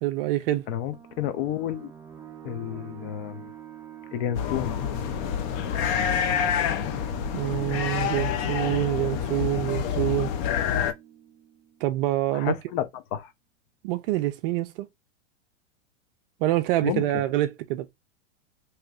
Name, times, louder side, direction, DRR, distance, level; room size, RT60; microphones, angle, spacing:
voice 1, 0.0-0.7 7.3-10.3 11.8-12.6 13.8-14.9 16.4-17.9, right 15 dB, 45° right, 0.5 m, -26 dB
voice 2, 0.7-1.9 2.4-3.5 4.1-4.8 12.3-13.3 16.8-17.2, left 11 dB, 50° left, 0.8 m, -31 dB
sound 1, 0.9-12.2, right 11 dB, 5° right, 0.8 m, -45 dB
sound 2, 4.3-10.9, left 8 dB, 30° left, 0.4 m, -27 dB
3.0 x 2.9 x 2.4 m
hypercardioid pair, 130°, 38 cm